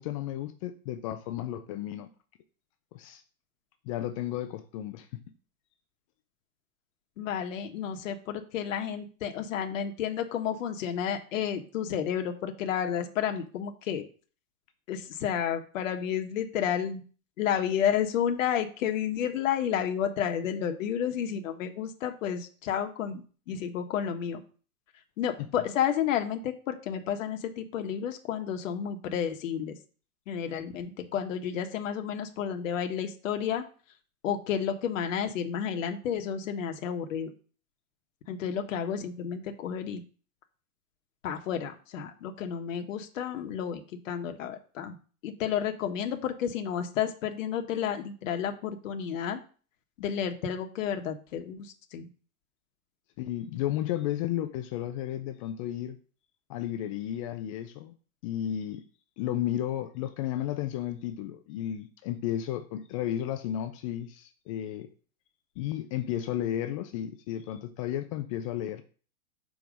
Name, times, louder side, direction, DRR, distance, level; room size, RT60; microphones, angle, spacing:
voice 1, 0.0-2.1 2.9-3.2 3.8-5.1 53.2-56.0 56.5-57.9 58.2-58.8 59.2-64.9 65.6-68.8, left 12 dB, 25° left, 9 dB, 0.4 m, -33 dB
voice 2, 7.2-14.0 14.9-17.0 17.4-23.2 23.5-24.4 25.2-29.8 30.3-33.6 34.2-37.3 38.3-40.0 41.2-45.0 45.2-49.4 50.0-52.1, left 8 dB, 60° left, 5 dB, 1.2 m, -31 dB
5.3 x 4.6 x 6.2 m, 0.40 s
hypercardioid pair, 125°, 44 cm